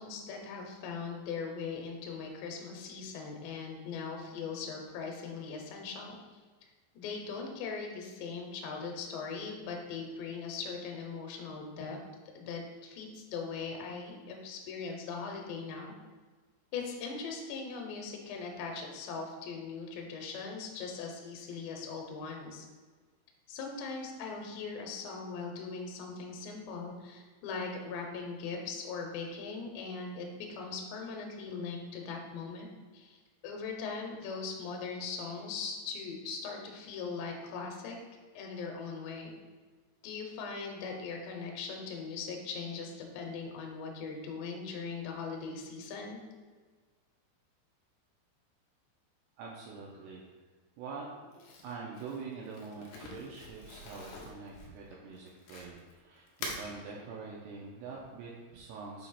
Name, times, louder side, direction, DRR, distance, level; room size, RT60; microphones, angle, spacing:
voice 1, 0.0-6.2 6.9-12.0 12.3-15.9 16.7-22.7 23.5-38.0 38.3-39.3 40.0-46.2, left 5 dB, 75° left, 1 dB, 2.8 m, -40 dB
voice 2, 49.4-50.2 50.8-59.1, right 4 dB, 90° right, -3 dB, 2.3 m, -45 dB
Crumpling crinkling, 51.3-55.9 56.3-56.7, left 3 dB, 90° left, 2.2 m, -45 dB
7.3 x 3.1 x 5.6 m, 1.4 s
omnidirectional pair, 5.6 m